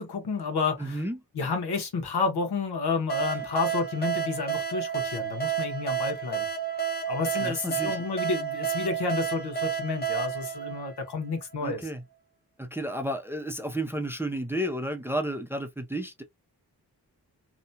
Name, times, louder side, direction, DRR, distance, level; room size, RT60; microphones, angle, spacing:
voice 1, 0.0-1.0 1.3-6.5 7.1-11.8, left 4 dB, 90° left, 1.1 m, -30 dB
voice 2, 0.8-1.2 7.3-8.0 11.6-12.0 12.6-16.2, right 1 dB, 5° right, 0.5 m, -32 dB
sound 1, 3.1-11.5, right 8 dB, 25° left, 0.9 m, -31 dB
2.8 x 2.2 x 2.6 m
wide cardioid pair, 90°, 39 cm